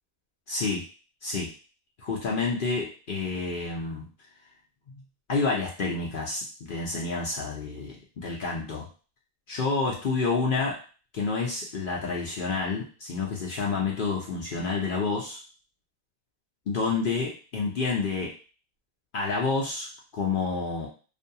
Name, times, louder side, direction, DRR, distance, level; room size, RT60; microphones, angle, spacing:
voice 1, 0.5-0.8 1.2-1.5 2.0-4.1 4.9-5.0 5.3-8.9 9.5-10.8 11.1-15.4 16.7-18.3 19.1-19.9 20.1-20.9, left 4 dB, 60° left, -3 dB, 0.5 m, -29 dB
2.6 x 2.3 x 2.7 m, 0.37 s
omnidirectional pair, 1.5 m